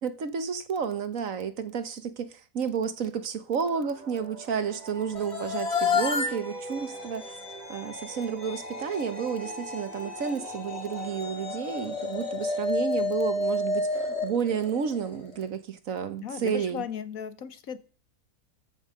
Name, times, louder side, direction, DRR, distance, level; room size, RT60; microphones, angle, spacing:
voice 1, 0.0-7.3 7.7-16.8, right 7 dB, 60° right, 1.5 m, -31 dB
sound 1, 3.6-13.1, right 3 dB, 30° right, 1.2 m, -45 dB
sound 2, 5.1-15.3, left 3 dB, 45° left, 2.6 m, -31 dB
voice 2, 16.2-17.8, left 8 dB, 65° left, 1.5 m, -36 dB
13.5 x 6.0 x 6.5 m
omnidirectional pair, 1.6 m